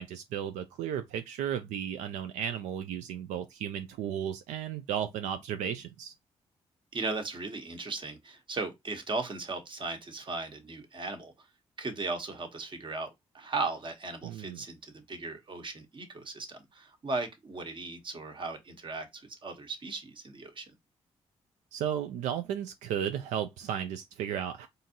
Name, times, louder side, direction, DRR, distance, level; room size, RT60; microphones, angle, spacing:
voice 1, 0.0-6.1 14.2-14.6 21.7-24.7, right 9 dB, 90° right, 0.4 m, -34 dB
voice 2, 6.9-11.3 11.8-20.7, right 3 dB, 45° right, 1.1 m, -37 dB
3.8 x 2.6 x 2.8 m
supercardioid pair, 60°, 12 cm